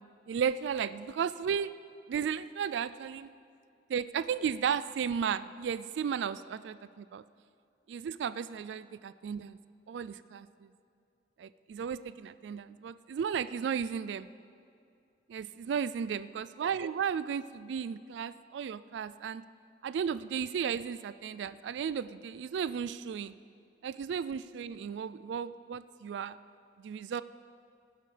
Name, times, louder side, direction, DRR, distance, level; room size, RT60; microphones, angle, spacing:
voice 1, 0.3-1.7 2.1-3.3 3.9-7.2 7.9-9.6 9.9-10.7 11.4-14.3 15.3-19.4 19.8-23.3 23.8-26.4 26.8-27.2, right 7 dB, 75° right, 15 dB, 0.3 m, -34 dB
17.0 x 9.9 x 3.4 m, 2.5 s
head